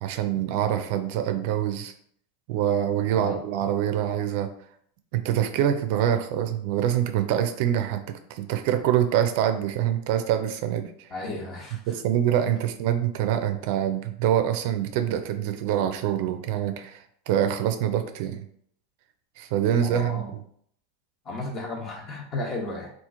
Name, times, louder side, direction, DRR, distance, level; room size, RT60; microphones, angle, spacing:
voice 1, 0.0-1.9 2.5-4.5 5.1-11.1 11.9-18.4 19.4-20.2, right 10 dB, 60° right, 8 dB, 0.4 m, -25 dB
voice 2, 3.0-3.4 11.1-12.0 19.8-20.3 21.2-22.9, left 2 dB, 30° left, 1 dB, 0.9 m, -34 dB
2.9 x 2.4 x 3.7 m, 0.65 s
supercardioid pair, 130°, 0 cm